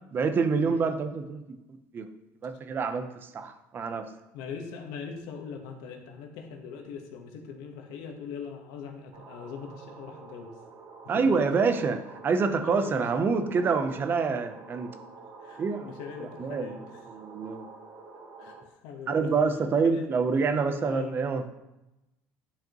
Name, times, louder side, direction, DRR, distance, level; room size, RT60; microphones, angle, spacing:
voice 1, 0.1-1.4 1.9-2.1 2.4-4.1 11.1-14.9 15.6-15.9 16.4-16.8 17.1-17.7 19.1-21.4, right 5 dB, 35° right, 8 dB, 0.7 m, -27 dB
voice 2, 4.3-10.5 11.0-11.4 12.6-13.1 15.4-17.0 18.4-19.3 19.8-20.1 20.8-21.1, left 6 dB, 80° left, 3 dB, 1.2 m, -41 dB
sound 1, 9.1-18.6, right 4 dB, 65° right, 1.4 m, -48 dB
10.5 x 4.9 x 3.0 m, 0.97 s
cardioid pair, 125°, 6 cm